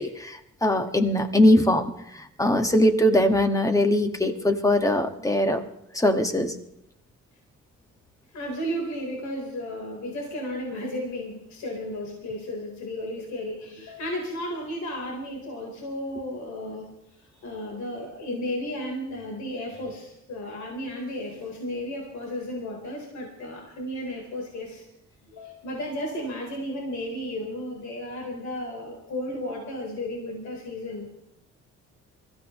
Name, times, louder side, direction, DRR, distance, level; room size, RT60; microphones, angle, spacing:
voice 1, 0.0-5.6 5.9-6.6, left 1 dB, 10° left, 5 dB, 1.7 m, -21 dB
voice 2, 8.3-16.9 17.3-24.8 25.2-31.1, left 1 dB, 70° left, -1 dB, 4.1 m, -34 dB
23.5 x 15.5 x 3.2 m, 0.76 s
cardioid pair, 90°, 30 cm